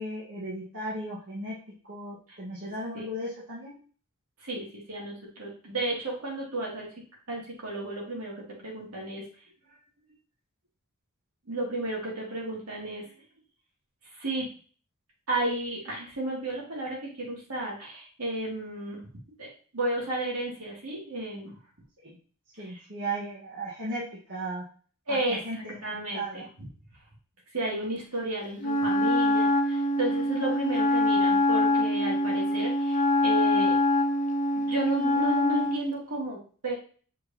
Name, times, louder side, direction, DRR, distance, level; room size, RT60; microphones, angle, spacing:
voice 1, 0.0-1.5 1.9-3.7 22.0-22.2 22.6-24.0 24.3-24.6 25.1-25.8 26.1-26.5, right 1 dB, 55° right, -7 dB, 1.6 m, -36 dB
voice 2, 4.4-6.9 7.3-9.3 11.5-13.1 14.1-14.5 15.3-19.0 19.4-21.6 22.6-22.8 25.1-25.4 25.8-26.7 27.5-33.8 34.6-36.8, right 1 dB, 75° right, -4 dB, 2.7 m, -33 dB
Wind instrument woodwind instrument, 28.6-35.8, left 1 dB, 35° left, 0.8 m, -24 dB
6.5 x 4.9 x 2.9 m, 0.41 s
head